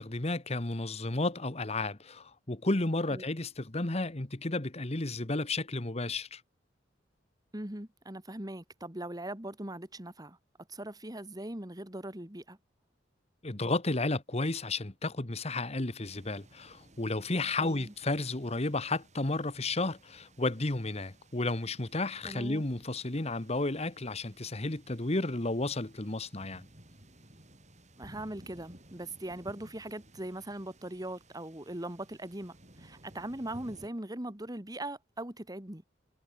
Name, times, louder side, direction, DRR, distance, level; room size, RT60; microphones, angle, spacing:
voice 1, 0.0-6.4 13.4-26.7, left 2 dB, 35° left, 1.4 m, -32 dB
voice 2, 7.5-10.4 10.7-12.6 17.6-17.9 22.2-22.6 28.0-35.8, right 1 dB, 20° right, 2.2 m, -40 dB
sound 1, 16.0-33.9, right 1 dB, 40° right, 7.3 m, -57 dB
head